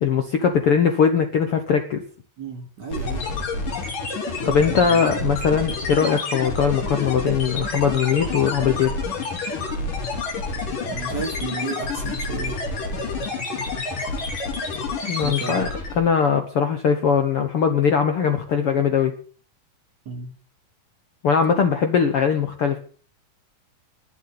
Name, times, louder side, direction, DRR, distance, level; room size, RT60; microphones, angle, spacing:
voice 1, 0.0-2.0 4.2-8.9 15.1-15.7 16.0-19.1 21.2-22.8, left 7 dB, 55° left, 6 dB, 1.7 m, -20 dB
voice 2, 2.4-3.2 4.4-5.5 10.9-12.6 15.2-15.7 20.1-20.3, right 4 dB, 35° right, 5 dB, 2.7 m, -33 dB
sound 1, 2.9-16.1, left 3 dB, 70° left, 5.2 m, -28 dB
12.0 x 8.2 x 9.7 m, 0.42 s
omnidirectional pair, 3.9 m